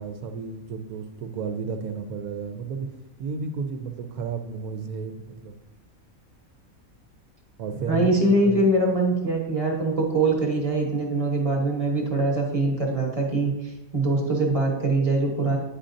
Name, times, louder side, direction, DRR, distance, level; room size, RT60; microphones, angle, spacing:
voice 1, 0.0-2.9 3.2-5.5 7.6-8.6, right 5 dB, 90° right, 7 dB, 1.1 m, -32 dB
voice 2, 7.9-13.5 13.9-15.6, right 2 dB, 25° right, -1 dB, 1.0 m, -23 dB
8.6 x 5.0 x 2.6 m, 0.97 s
omnidirectional pair, 1.5 m